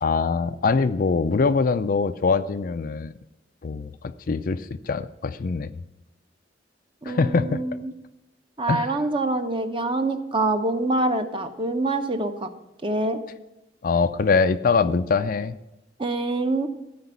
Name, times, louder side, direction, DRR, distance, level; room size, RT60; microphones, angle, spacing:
voice 1, 0.0-3.1 3.6-5.7 7.1-7.6 8.7-9.0 13.8-15.6, left 4 dB, 50° left, 12 dB, 0.4 m, -23 dB
voice 2, 7.0-7.9 8.6-12.5 12.8-13.2 16.0-16.7, right 2 dB, 30° right, 7 dB, 0.8 m, -25 dB
13.5 x 5.1 x 8.2 m, 0.95 s
head